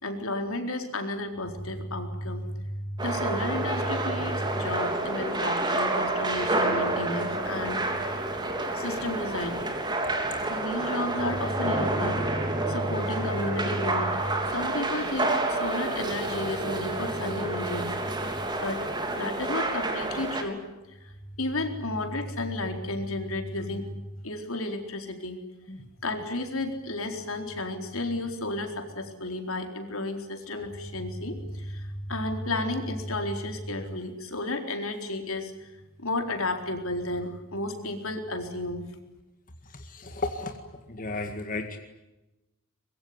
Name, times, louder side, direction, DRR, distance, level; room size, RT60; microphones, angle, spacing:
voice 1, 0.0-7.8 8.7-9.6 10.5-18.3 18.6-18.8 19.1-20.6 20.9-25.4 26.0-35.7 36.0-38.8, left 1 dB, 75° left, 5 dB, 4.2 m, -32 dB
sound 1, 3.0-20.4, right 2 dB, 20° right, 3.5 m, -29 dB
voice 2, 39.6-40.6 40.9-41.8, left 3 dB, 40° left, 5 dB, 2.0 m, -34 dB
24.5 x 22.0 x 9.6 m, 1.0 s
head